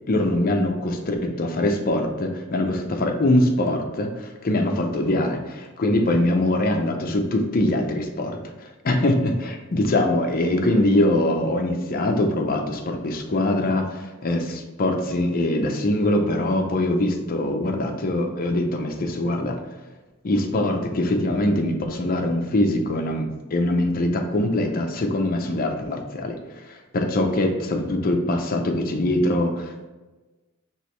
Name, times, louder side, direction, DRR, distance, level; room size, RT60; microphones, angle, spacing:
voice 1, 0.1-8.4 8.8-19.6 20.2-26.4 26.9-29.9, left 1 dB, 45° left, 3 dB, 0.6 m, -23 dB
4.7 x 3.0 x 3.2 m, 1.2 s
head